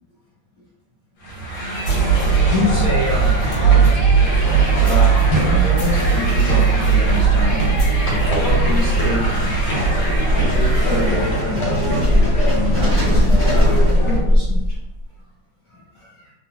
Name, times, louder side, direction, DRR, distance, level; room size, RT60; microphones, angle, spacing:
sound 1, 1.2-11.6, equal, 70° left, 1.9 m, -28 dB
sound 2, 1.8-14.2, right 5 dB, 90° left, 2.0 m, -18 dB
voice 1, 2.4-3.8 4.5-7.9 8.4-9.6 10.3-14.6 15.7-16.3, left 2 dB, 50° left, -7 dB, 1.1 m, -27 dB
sound 3, 7.0-15.0, left 1 dB, 10° right, 0.6 m, -20 dB
4.0 x 2.4 x 2.8 m, 0.91 s
omnidirectional pair, 2.3 m